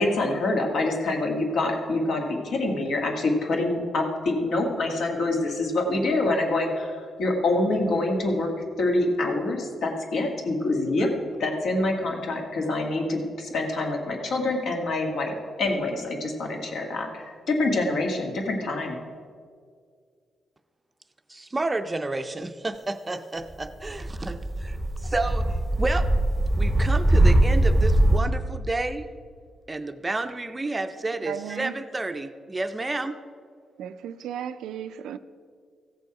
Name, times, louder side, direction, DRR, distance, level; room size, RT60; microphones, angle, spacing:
voice 1, 0.0-8.5 8.8-11.1 11.4-19.0, left 2 dB, 70° left, 1 dB, 1.7 m, -26 dB
voice 2, 21.3-24.8 25.0-26.1 26.6-29.1 29.7-33.2, right 2 dB, 20° right, 9 dB, 0.5 m, -30 dB
sound 1, 23.9-28.2, right 1 dB, 5° left, 1.0 m, -21 dB
voice 3, 31.3-31.7 33.8-35.2, right 9 dB, 90° right, 12 dB, 0.4 m, -35 dB
15.0 x 6.9 x 4.8 m, 2.1 s
cardioid pair, 120°, 0 cm